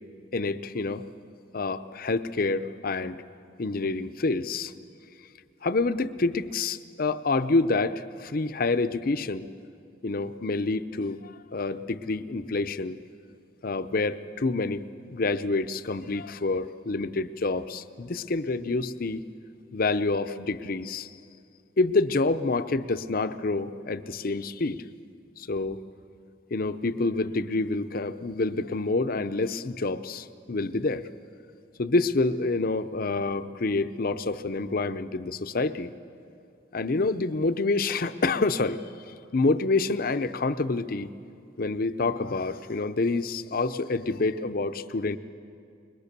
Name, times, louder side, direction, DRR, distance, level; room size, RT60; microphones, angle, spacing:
voice 1, 0.3-1.0 1.5-3.2 3.6-4.7 5.6-9.5 10.0-13.0 13.6-19.2 19.7-21.1 21.8-24.8 25.4-25.8 26.5-31.0 31.8-35.9 36.7-38.8 39.3-41.1 41.6-45.2, left 3 dB, 50° left, 11 dB, 0.7 m, -27 dB
22.0 x 22.0 x 6.8 m, 2.5 s
head